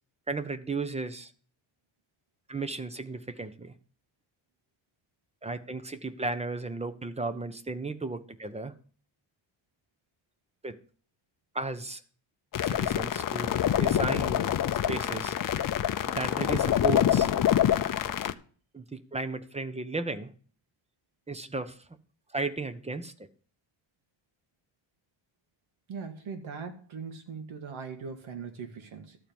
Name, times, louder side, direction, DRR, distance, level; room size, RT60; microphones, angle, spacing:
voice 1, 0.3-1.3 2.5-3.7 5.4-8.7 10.6-10.8 11.5-12.0 12.6-14.5 14.9-15.3 16.1-17.3 18.7-20.3 21.3-21.8 22.3-23.1, right 3 dB, 15° right, 0.6 m, -34 dB
sound 1, 12.5-18.3, left 10 dB, 45° left, 0.5 m, -26 dB
voice 2, 25.9-29.2, right 5 dB, 85° right, 1.9 m, -40 dB
13.0 x 4.5 x 6.9 m
wide cardioid pair, 160°, 47 cm